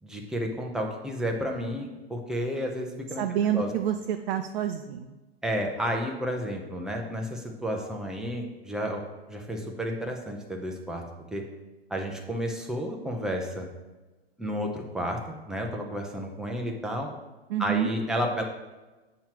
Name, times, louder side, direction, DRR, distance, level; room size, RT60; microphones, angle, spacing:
voice 1, 0.0-3.2 3.5-3.7 5.4-9.0 9.3-11.0 11.3-11.4 11.9-13.7 14.4-17.1 17.6-18.4, equal, ahead, 1 dB, 0.6 m, -31 dB
voice 2, 3.2-5.1 17.5-17.9, right 10 dB, 60° right, 5 dB, 0.5 m, -28 dB
7.2 x 3.0 x 5.8 m, 1.1 s
hypercardioid pair, 135°, 31 cm